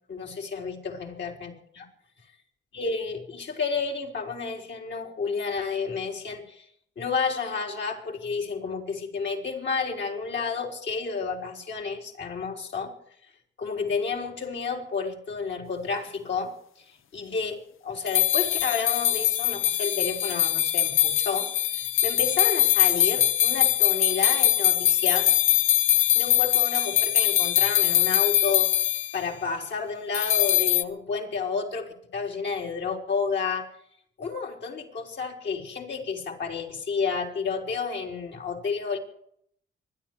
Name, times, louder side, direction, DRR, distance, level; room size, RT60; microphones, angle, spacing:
voice 1, 0.1-1.9 2.7-6.7 7.0-13.0 13.6-25.3 25.9-33.7 34.2-39.0, left 5 dB, 60° left, 1 dB, 4.2 m, -31 dB
sound 1, 18.1-29.2 30.1-30.8, left 12 dB, 85° left, 0.9 m, -22 dB
25.0 x 11.0 x 4.8 m, 0.66 s
cardioid pair, 75°, 20 cm